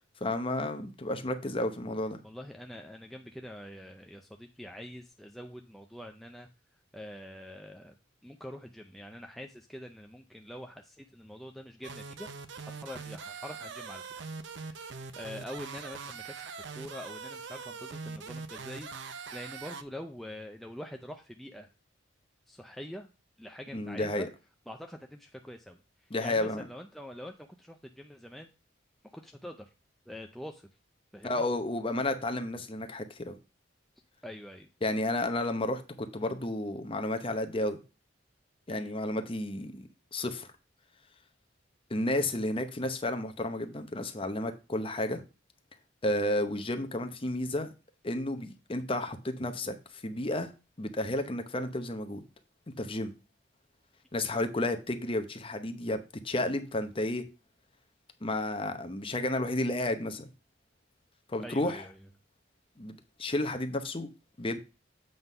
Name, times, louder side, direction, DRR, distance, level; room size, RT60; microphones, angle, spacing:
voice 1, 0.2-2.2 23.7-24.3 26.1-26.7 31.2-33.3 34.8-37.8 38.7-40.5 41.9-45.2 46.0-47.7 48.0-50.5 50.8-52.2 52.8-53.1 54.1-56.0 56.2-57.2 58.2-60.3 61.3-61.8 62.8-64.1 64.4-64.6, left 1 dB, 30° left, 0.8 m, -32 dB
voice 2, 2.2-6.5 6.9-7.9 8.2-12.3 12.6-14.3 14.7-16.5 16.7-21.7 22.5-23.1 23.4-24.3 24.7-28.5 29.1-29.7 30.1-30.7 31.1-31.4 34.2-34.7 38.7-39.0 61.4-62.1, left 1 dB, ahead, 0.4 m, -45 dB
sound 1, 11.8-19.8, right 5 dB, 65° right, 0.6 m, -42 dB
7.8 x 3.7 x 5.4 m
head